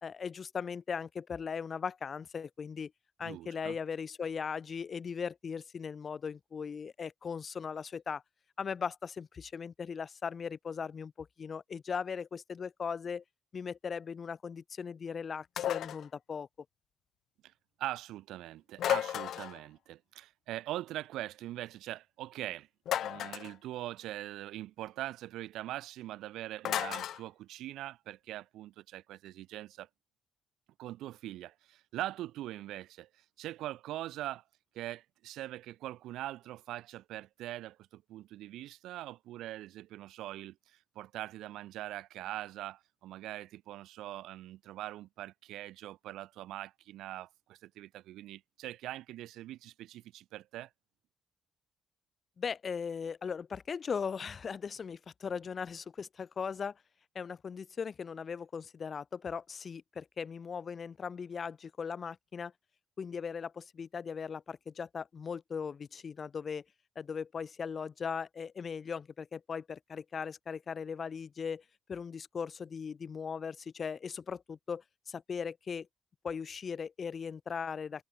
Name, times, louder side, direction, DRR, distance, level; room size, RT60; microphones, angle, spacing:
voice 1, 0.0-2.9 3.2-8.2 8.6-13.2 13.5-16.5 52.4-56.8 57.1-62.5 63.0-66.6 66.9-75.9 76.2-78.0, left 6 dB, 45° left, 1.1 m, -38 dB
voice 2, 3.2-3.8 17.4-17.5 17.8-22.7 23.0-29.9 30.8-34.4 34.7-50.7, right 14 dB, 85° right, 1.4 m, -42 dB
sound 1, 15.6-16.1 18.8-19.6 22.8-23.5 26.6-27.2, left 11 dB, 70° left, 0.4 m, -33 dB
cardioid pair, 90°, 0 cm